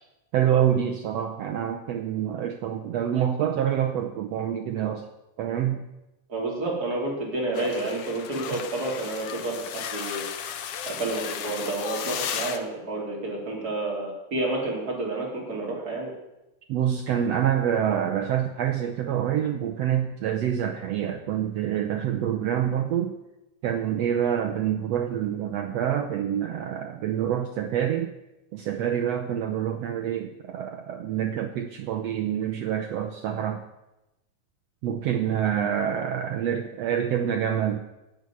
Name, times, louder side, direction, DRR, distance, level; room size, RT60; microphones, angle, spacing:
voice 1, 0.3-5.1 5.4-5.9 16.7-23.2 23.6-28.1 28.5-33.6 34.8-37.8, right 9 dB, 85° right, 4 dB, 1.4 m, -26 dB
voice 2, 6.3-10.2 10.9-16.1, right 2 dB, 25° right, -3 dB, 3.7 m, -30 dB
sound 1, 7.5-12.6, left 8 dB, 85° left, 1.2 m, -34 dB
11.0 x 8.1 x 9.4 m, 0.95 s
omnidirectional pair, 3.9 m